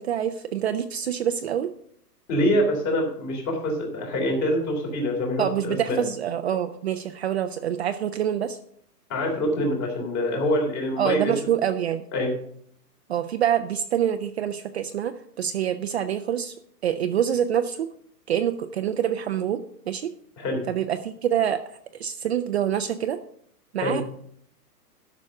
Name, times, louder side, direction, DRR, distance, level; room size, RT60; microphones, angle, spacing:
voice 1, 0.0-1.7 5.4-8.6 11.0-12.0 13.1-16.5 16.8-17.9 18.3-20.1 20.7-23.2 23.7-24.0, right 9 dB, 45° right, 8 dB, 0.6 m, -26 dB
voice 2, 2.3-6.0 9.1-11.3 12.1-12.3 20.4-20.6 23.8-24.0, left 1 dB, 25° left, 1 dB, 3.1 m, -25 dB
12.0 x 6.3 x 6.4 m, 0.67 s
hypercardioid pair, 160°, 48 cm